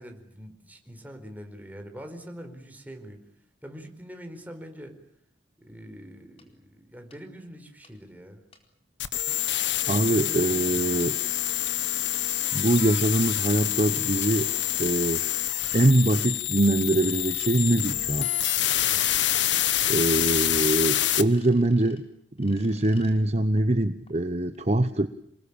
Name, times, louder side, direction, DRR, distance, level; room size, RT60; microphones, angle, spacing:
voice 1, 0.0-3.2 3.6-5.0 5.6-8.4 10.1-11.1 18.8-19.1, equal, 10° right, 5 dB, 4.5 m, -44 dB
sound 1, 6.4-6.5 7.1-7.2 7.8-7.9 8.5-8.6 10.2-10.3 10.8-10.9 11.5-11.6 12.1-12.2 12.9-13.0 13.9-14.7 15.5-16.4 16.9-18.8 19.7-20.7 21.0-22.0 22.4-23.1 23.6-23.7 24.1-24.2 24.5-24.6, left 4 dB, 35° left, 4.3 m, -52 dB
sound 2, 9.0-21.2, left 12 dB, 85° left, 1.5 m, -26 dB
voice 2, 9.9-11.2 12.3-14.5 14.8-15.2 15.7-18.3 19.9-22.0 22.4-25.1, right 1 dB, 35° right, 10 dB, 1.0 m, -23 dB
27.5 x 21.5 x 8.7 m, 0.68 s
head